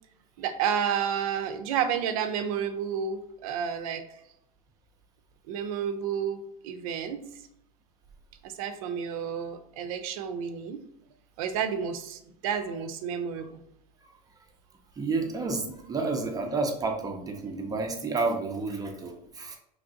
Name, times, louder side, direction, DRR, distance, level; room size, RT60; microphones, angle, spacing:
voice 1, 0.4-4.0 5.5-7.2 8.4-10.8 11.4-13.6, right 8 dB, 65° right, 8 dB, 0.5 m, -31 dB
voice 2, 15.0-19.6, right 3 dB, 20° right, 3 dB, 0.6 m, -30 dB
3.2 x 2.5 x 3.9 m, 0.76 s
hypercardioid pair, 110°, 19 cm